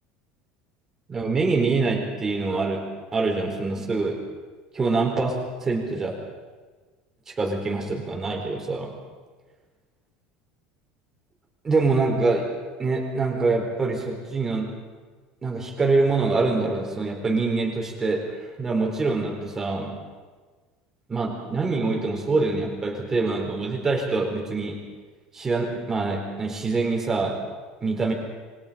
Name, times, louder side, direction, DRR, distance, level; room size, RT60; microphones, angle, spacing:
voice 1, 1.1-4.2 4.7-6.1 7.3-9.0 11.6-12.5 12.8-14.8 15.4-20.0 21.1-24.9 25.3-27.4 27.8-28.1, right 3 dB, 15° right, 1 dB, 4.6 m, -25 dB
28.5 x 24.5 x 5.3 m, 1.4 s
cardioid pair, 160°, 3 cm